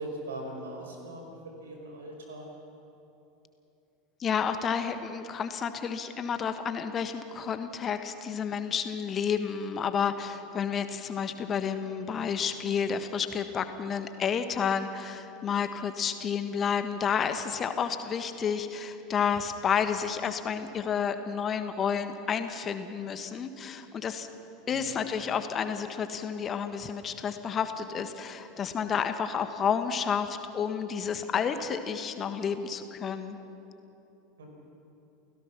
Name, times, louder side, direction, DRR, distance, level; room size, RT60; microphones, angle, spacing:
voice 1, 0.0-1.3 1.6-2.5 24.7-24.9 34.4-34.5, right 1 dB, 70° right, 1 dB, 5.1 m, -40 dB
voice 2, 4.2-24.3 24.7-33.4, left 7 dB, 30° left, 9 dB, 1.5 m, -30 dB
29.5 x 17.0 x 6.0 m, 2.9 s
figure-of-eight pair, 80°, 0 cm